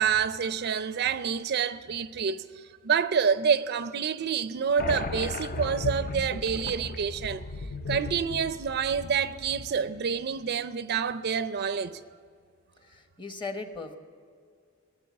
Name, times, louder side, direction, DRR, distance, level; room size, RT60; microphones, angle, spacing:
voice 1, 0.0-7.5 7.9-12.0, right 6 dB, 50° right, 0.5 m, -28 dB
sound 1, 4.8-10.0, left 3 dB, 45° left, 0.5 m, -36 dB
voice 2, 12.8-14.0, left 3 dB, 25° left, 1.0 m, -38 dB
16.0 x 7.6 x 8.4 m
head